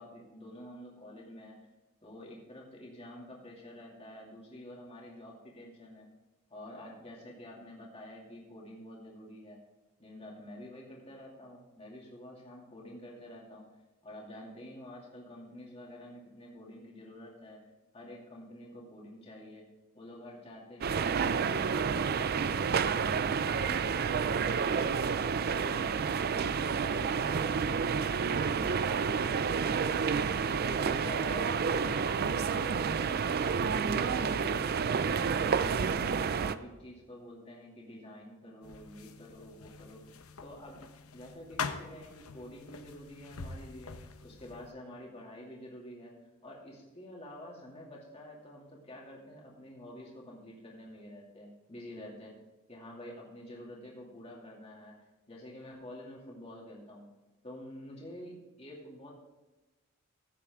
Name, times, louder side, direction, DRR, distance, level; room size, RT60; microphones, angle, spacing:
voice 1, 0.0-1.7 2.0-6.1 6.5-9.6 10.0-13.7 14.0-17.6 17.9-19.7 19.9-23.1 23.4-35.2 35.5-40.0 40.4-40.8 41.1-44.0 44.2-46.2 46.4-52.3 52.7-57.0 57.4-59.1, left 1 dB, 30° left, -3 dB, 2.5 m, -48 dB
sound 1, 20.8-36.6, right 6 dB, 45° right, 0.4 m, -29 dB
sound 2, 38.6-44.7, left 5 dB, 85° left, 0.8 m, -43 dB
14.5 x 8.3 x 3.6 m, 1.1 s
head